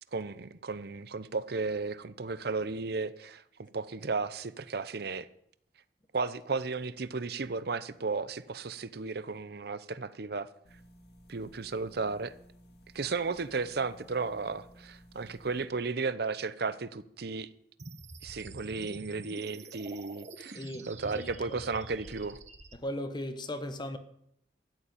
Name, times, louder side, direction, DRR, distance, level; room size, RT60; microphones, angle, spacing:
voice 1, 0.1-5.3 6.1-10.5 11.3-12.3 12.9-17.5 18.2-20.6 20.9-22.4, right 4 dB, 60° right, 0.7 m, -34 dB
sound 1, 10.6-15.6, equal, 65° left, 2.5 m, -57 dB
sound 2, 17.8-22.8, right 2 dB, 40° right, 1.1 m, -47 dB
voice 2, 20.5-21.6 22.8-24.0, left 1 dB, 25° left, 1.0 m, -38 dB
13.5 x 7.0 x 9.1 m
head